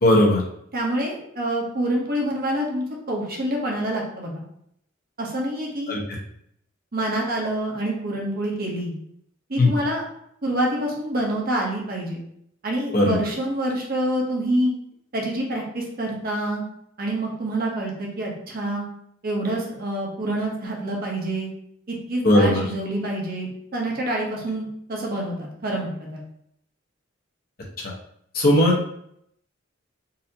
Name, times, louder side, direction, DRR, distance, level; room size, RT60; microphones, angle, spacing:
voice 1, 0.0-0.4 5.9-6.0 9.6-9.7 12.9-13.2 22.2-22.6 27.8-27.9 28.3-28.9, left 1 dB, 50° left, -3 dB, 1.0 m, -17 dB
voice 2, 0.7-4.4 5.2-6.0 6.9-8.9 9.5-10.0 10.4-12.2 12.6-14.7 15.1-16.6 17.0-18.8 19.2-21.5 21.9-26.2, right 1 dB, 50° right, -2 dB, 0.9 m, -27 dB
4.1 x 2.7 x 2.7 m, 0.72 s
head